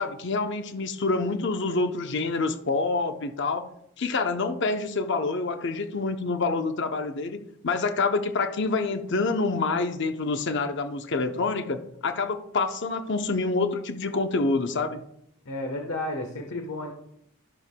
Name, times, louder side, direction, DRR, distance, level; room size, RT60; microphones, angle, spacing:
voice 1, 0.0-3.7 4.0-15.0, left 3 dB, 55° left, 7 dB, 0.7 m, -27 dB
voice 2, 15.4-16.9, left 2 dB, 80° left, 3 dB, 1.2 m, -32 dB
13.5 x 6.7 x 2.2 m, 0.74 s
head